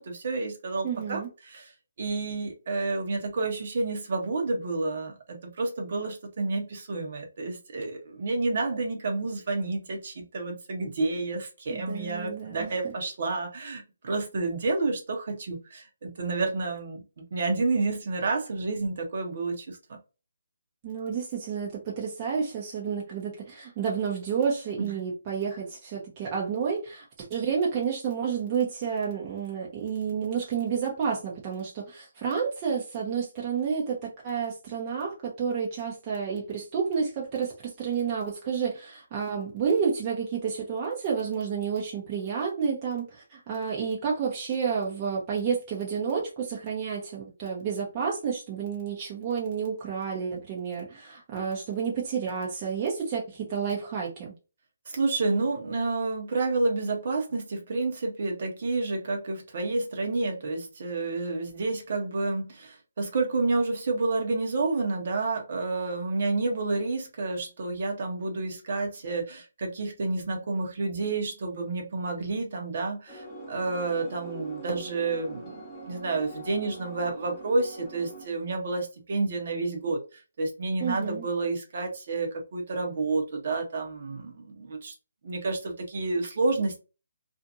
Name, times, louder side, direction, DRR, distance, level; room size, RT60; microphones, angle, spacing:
voice 1, 0.0-1.7 2.0-19.8 24.8-24.9 54.9-84.9 85.2-86.8, right 3 dB, 50° right, 0.9 m, -30 dB
voice 2, 0.8-1.3 11.7-12.9 20.8-54.3 80.8-81.3, right 6 dB, 30° right, 0.7 m, -30 dB
sound 1, 73.1-78.3, right 1 dB, 15° left, 1.1 m, -43 dB
2.6 x 2.5 x 2.6 m
figure-of-eight pair, 150°, 0 cm